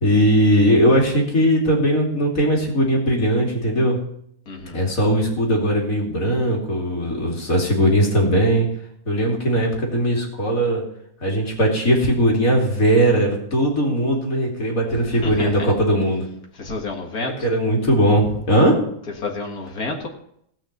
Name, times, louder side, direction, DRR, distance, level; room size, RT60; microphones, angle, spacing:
voice 1, 0.0-4.0 4.7-8.7 9.1-10.8 11.2-16.2 17.2-18.7, equal, 70° left, -1 dB, 3.3 m, -19 dB
voice 2, 4.5-4.8 14.9-15.5 16.6-17.3 19.2-20.1, left 3 dB, 85° left, 1 dB, 2.3 m, -29 dB
17.5 x 5.9 x 6.6 m, 0.71 s
omnidirectional pair, 1.5 m